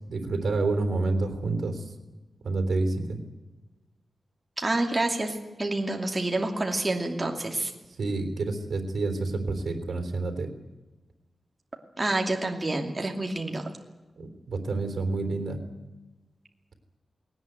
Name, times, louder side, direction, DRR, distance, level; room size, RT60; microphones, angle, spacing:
voice 1, 0.1-1.8 2.4-3.2 8.0-10.5 14.2-15.6, right 3 dB, 75° right, 8 dB, 3.5 m, -28 dB
voice 2, 4.6-7.7 12.0-13.7, right 2 dB, 25° right, 2 dB, 2.6 m, -28 dB
20.0 x 18.5 x 9.3 m, 1.1 s
wide cardioid pair, 105°, 0 cm